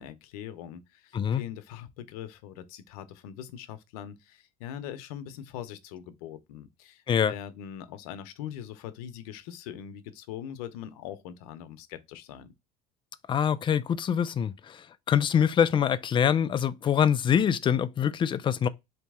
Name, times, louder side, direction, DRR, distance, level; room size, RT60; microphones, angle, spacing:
voice 1, 0.0-12.5, left 10 dB, 80° left, 0.7 m, -42 dB
voice 2, 13.3-18.7, left 8 dB, 25° left, 0.4 m, -25 dB
4.1 x 2.9 x 3.5 m
supercardioid pair, 105°, 19 cm